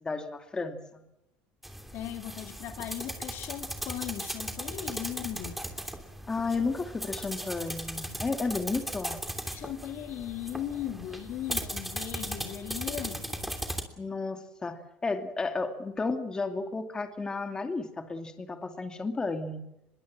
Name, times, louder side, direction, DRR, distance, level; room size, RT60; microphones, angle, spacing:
voice 1, 0.0-1.0 6.3-9.2 14.0-19.6, left 3 dB, 15° left, 7 dB, 2.6 m, -33 dB
sound 1, 1.6-13.8, right 1 dB, 5° right, 3.0 m, -37 dB
voice 2, 1.9-5.6 9.5-13.5, left 11 dB, 50° left, 7 dB, 2.2 m, -38 dB
24.5 x 22.0 x 7.5 m, 0.87 s
supercardioid pair, 130°, 5 cm